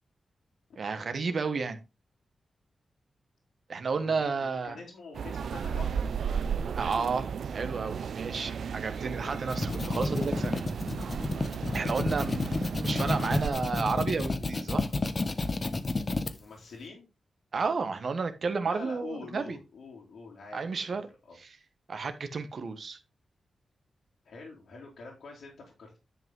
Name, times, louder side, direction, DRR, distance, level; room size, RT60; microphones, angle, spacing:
voice 1, 0.8-1.8 3.7-4.8 6.8-7.3 7.5-10.6 11.7-14.9 17.5-19.6 20.5-21.1 21.9-23.0, right 4 dB, 60° right, 1.4 m, -32 dB
voice 2, 4.0-6.2 11.6-11.9 16.4-17.1 18.6-21.4 24.2-26.0, left 4 dB, 85° left, 2.9 m, -46 dB
sound 1, 5.1-13.5, right 7 dB, 80° right, 0.4 m, -35 dB
sound 2, 9.3-16.3, left 3 dB, 35° left, 1.0 m, -30 dB
10.5 x 5.6 x 3.8 m
cardioid pair, 90°, 0 cm